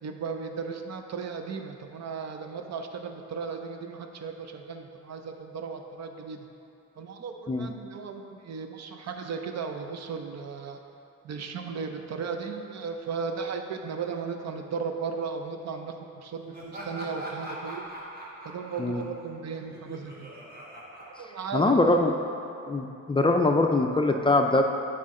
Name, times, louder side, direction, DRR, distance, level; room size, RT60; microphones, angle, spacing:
voice 1, 0.0-6.5 7.0-10.8 11.2-17.9 18.4-20.3 21.0-21.8, right 5 dB, 60° right, 5 dB, 0.6 m, -36 dB
Laughter, 16.5-22.0, right 1 dB, 30° right, 1.4 m, -42 dB
voice 2, 21.5-22.1 22.7-24.6, left 2 dB, 15° left, 3 dB, 0.4 m, -22 dB
8.6 x 4.3 x 3.7 m, 2.7 s
cardioid pair, 90°, 30 cm